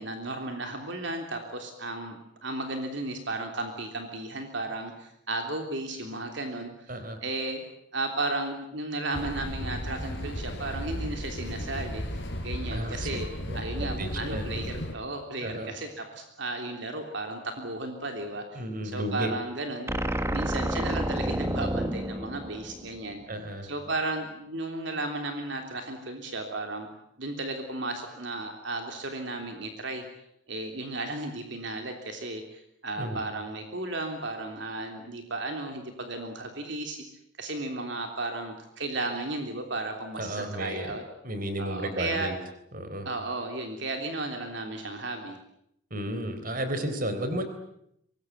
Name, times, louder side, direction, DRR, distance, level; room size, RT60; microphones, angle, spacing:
voice 1, 0.0-6.9 7.2-7.6 7.9-13.3 13.5-19.9 20.3-23.2 23.6-26.9 27.2-30.0 30.5-37.0 37.4-41.0 41.6-42.3 43.0-45.4, right 2 dB, 60° right, 4 dB, 3.3 m, -34 dB
voice 2, 6.9-7.2 12.7-14.4 15.4-15.7 18.5-19.3 23.3-23.7 33.0-33.2 40.2-40.9 41.2-42.4 42.7-43.1 45.9-47.4, right 1 dB, 40° right, 9 dB, 3.8 m, -33 dB
sound 1, 9.1-14.9, equal, 55° left, 4.5 m, -35 dB
sound 2, 19.9-23.2, right 1 dB, 15° right, 1.2 m, -30 dB
25.0 x 21.0 x 9.5 m, 0.76 s
head